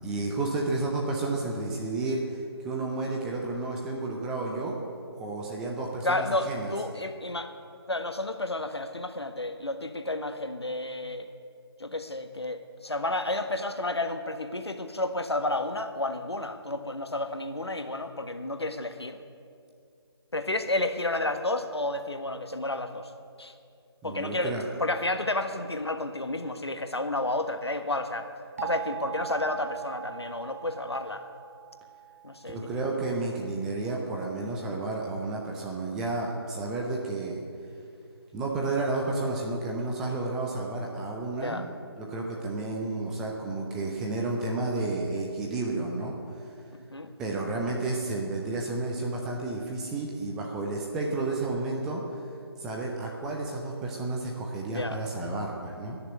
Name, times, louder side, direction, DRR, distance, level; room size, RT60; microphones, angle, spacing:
voice 1, 0.0-4.8 5.1-6.7 24.0-24.6 32.5-37.4 38.3-41.7 42.0-46.1 47.2-52.0 52.6-56.0, right 2 dB, 5° right, -1 dB, 0.4 m, -31 dB
voice 2, 6.0-7.5 7.9-11.3 11.8-19.2 20.3-23.1 23.4-23.5 24.0-28.3 28.6-31.2 32.2-32.6 41.3-41.7 46.7-47.1 54.7-55.0, left 2 dB, 75° left, 7 dB, 1.4 m, -31 dB
sound 1, 28.6-33.3, right 14 dB, 30° right, 0.8 m, -41 dB
19.5 x 6.9 x 9.7 m, 2.4 s
figure-of-eight pair, 150°, 14 cm